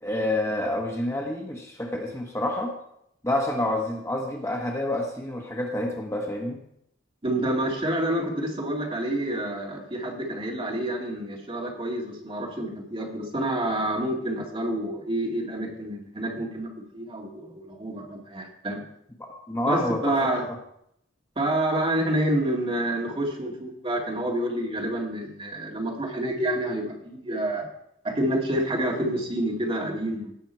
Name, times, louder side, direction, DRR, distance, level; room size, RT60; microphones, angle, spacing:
voice 1, 0.0-2.7 3.2-6.6 19.3-20.2, left 1 dB, 15° left, 1 dB, 1.2 m, -28 dB
voice 2, 7.2-18.8 19.7-20.5 21.4-27.7 28.0-30.3, right 1 dB, 30° right, 0 dB, 2.1 m, -28 dB
17.0 x 6.2 x 4.5 m, 0.74 s
head